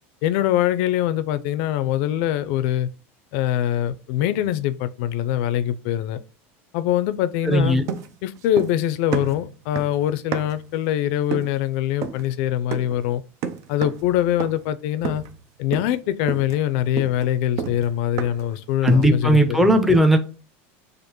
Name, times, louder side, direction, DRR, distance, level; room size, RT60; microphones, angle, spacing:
voice 1, 0.2-2.9 3.3-6.2 6.7-7.8 8.2-13.2 13.7-15.2 15.6-19.6, left 12 dB, 65° left, 0.5 m, -23 dB
voice 2, 7.4-7.8 18.8-20.2, equal, 5° right, 0.6 m, -17 dB
sound 1, 7.9-8.8 9.1-10.7 11.3-11.6 12.0-12.3 12.7-13.0 13.4-14.1 14.4-14.7 15.0-15.4 15.7-16.0 16.3-18.5 18.9-19.2, right 7 dB, 50° right, 0.5 m, -31 dB
6.5 x 2.5 x 3.0 m
supercardioid pair, 125°, 7 cm